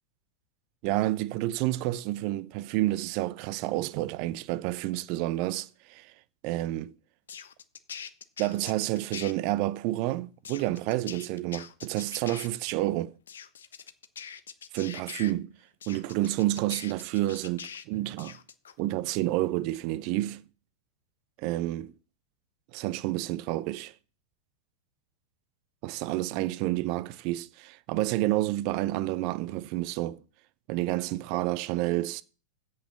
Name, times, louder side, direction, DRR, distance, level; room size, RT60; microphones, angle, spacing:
voice 1, 0.8-6.1 6.4-6.9 8.4-13.1 14.7-15.5 15.9-18.4 18.8-20.4 21.4-21.9 22.7-23.9 25.8-30.2 30.7-32.2, right 16 dB, 45° right, 0.5 m, -29 dB
sound 1, 7.3-9.3 10.4-12.5 13.3-15.3 15.8-17.9 18.2-18.7, left 8 dB, 65° left, 0.7 m, -43 dB
8.1 x 6.4 x 6.8 m
figure-of-eight pair, 90°, 0 cm